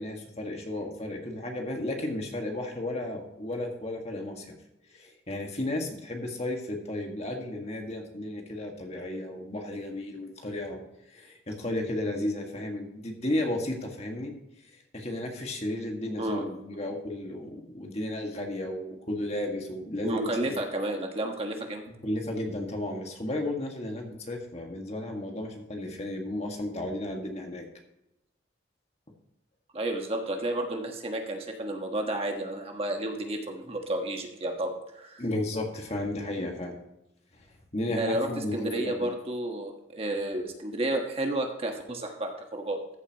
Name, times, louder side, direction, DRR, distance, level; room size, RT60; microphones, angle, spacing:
voice 1, 0.0-4.5 4.9-10.8 11.1-14.3 14.9-20.6 21.9-27.6 35.2-36.8 37.7-39.1, left 1 dB, 35° left, 2 dB, 1.8 m, -33 dB
voice 2, 20.0-21.8 29.7-35.2 37.9-42.8, right 1 dB, 30° right, 3 dB, 1.4 m, -31 dB
14.0 x 8.3 x 3.0 m, 0.88 s
head